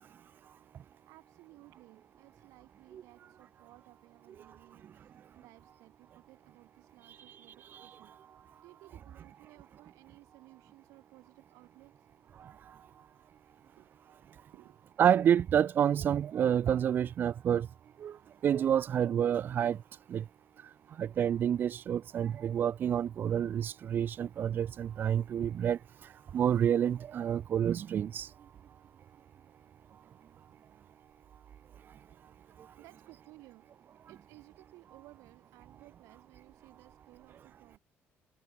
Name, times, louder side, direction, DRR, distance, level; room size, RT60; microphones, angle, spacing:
voice 1, 1.1-8.1 8.6-12.1 13.8-13.9 14.2-14.8 32.1-32.2 32.6-37.8, right 20 dB, 85° right, 6.6 m, -58 dB
voice 2, 15.0-17.7 18.0-18.1 18.4-19.8 20.1-20.2 21.0-25.8 26.3-28.3, right 9 dB, 40° right, 0.4 m, -28 dB
cardioid pair, 120°, 5 cm